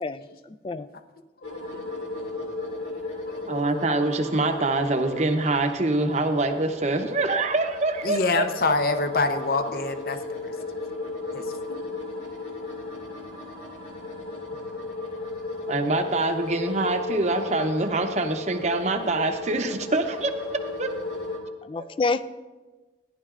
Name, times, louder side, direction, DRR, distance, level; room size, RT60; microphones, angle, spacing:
voice 1, 0.0-0.9 21.6-22.3, left 3 dB, 30° left, 14 dB, 0.3 m, -28 dB
sound 1, 1.4-21.4, left 3 dB, 85° left, 2.0 m, -35 dB
voice 2, 1.5-1.8 2.1-2.3 3.3-3.6 8.0-10.5 11.3-11.4 11.7-11.8, left 3 dB, 55° left, 8 dB, 0.7 m, -26 dB
voice 3, 3.5-8.7 15.7-20.9 21.7-21.8, right 2 dB, 40° right, 6 dB, 0.7 m, -25 dB
14.5 x 10.5 x 2.5 m, 1.3 s
head